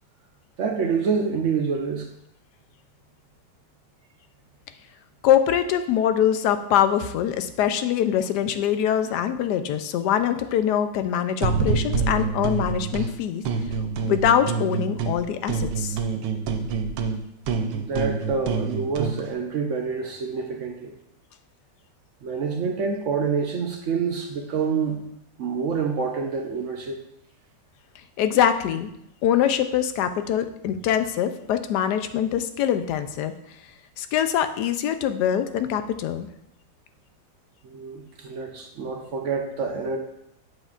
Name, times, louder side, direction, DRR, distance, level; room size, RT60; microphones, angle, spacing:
voice 1, 0.6-2.1 17.7-21.0 22.2-25.0 25.4-27.0 37.6-40.0, right 5 dB, 70° right, 3 dB, 0.7 m, -27 dB
voice 2, 5.2-13.4 14.0-16.0 28.2-28.9 29.2-33.3 34.0-36.3, left 9 dB, 75° left, 10 dB, 1.1 m, -23 dB
sound 1, 11.4-13.1 13.4-15.2 15.5-19.2, right 5 dB, 90° right, 1.4 m, -26 dB
7.9 x 6.4 x 2.4 m, 0.78 s
omnidirectional pair, 1.9 m